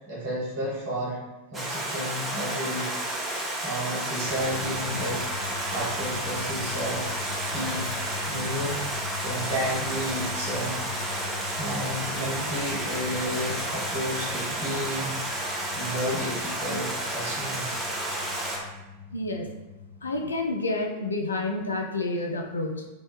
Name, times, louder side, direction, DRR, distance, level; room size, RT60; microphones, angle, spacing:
voice 1, 0.1-1.2 1.5-5.2 5.7-7.9 8.3-11.3 11.6-15.1 15.7-17.8, equal, 55° right, -6 dB, 1.0 m, -32 dB
Stream, 1.5-18.6, right 1 dB, 15° right, 0.5 m, -31 dB
sound 1, 4.2-20.4, left 7 dB, 10° left, 0.9 m, -41 dB
voice 2, 19.1-19.6 20.0-22.9, left 2 dB, 75° left, 2 dB, 0.3 m, -29 dB
2.8 x 2.2 x 2.2 m, 1.1 s
figure-of-eight pair, 90°, 0 cm